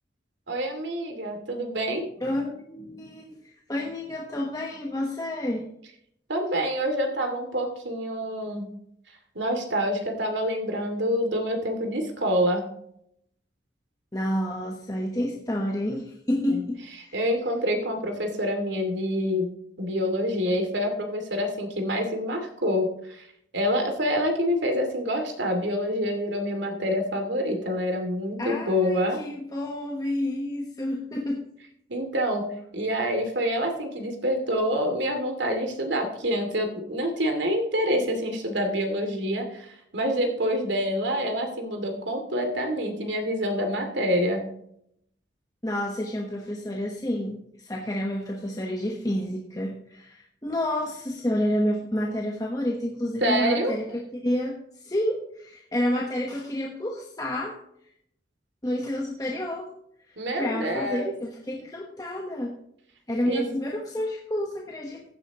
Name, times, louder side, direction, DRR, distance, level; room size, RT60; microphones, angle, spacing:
voice 1, 0.5-2.0 6.3-8.7 9.3-12.7 16.5-16.6 17.1-19.5 19.8-23.3 23.5-29.2 31.9-32.5 32.7-44.5 53.2-53.7 60.2-61.1 63.3-63.5, equal, 85° right, 4 dB, 2.5 m, -27 dB
voice 2, 2.2-5.7 14.1-17.2 28.4-31.4 45.6-54.6 54.8-57.6 58.6-59.7 60.4-62.5 63.1-65.0, left 1 dB, 20° left, 0 dB, 1.2 m, -29 dB
15.5 x 9.8 x 3.0 m, 0.72 s
head